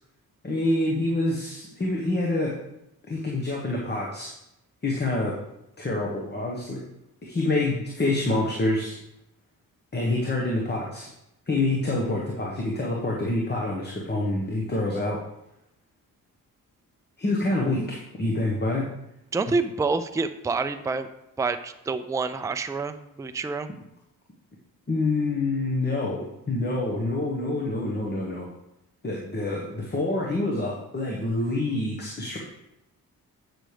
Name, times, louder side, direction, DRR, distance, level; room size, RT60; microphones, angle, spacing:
voice 1, 0.4-2.6 3.1-4.3 4.8-5.4 5.8-6.8 7.2-8.9 9.9-11.1 11.5-15.2 17.2-18.9 24.9-28.5 29.0-32.4, left 2 dB, 30° left, -2 dB, 1.4 m, -27 dB
voice 2, 19.3-21.1 21.4-23.7, right 4 dB, 10° right, 9 dB, 0.4 m, -27 dB
8.8 x 6.3 x 3.4 m, 0.86 s
cardioid pair, 75°, 35 cm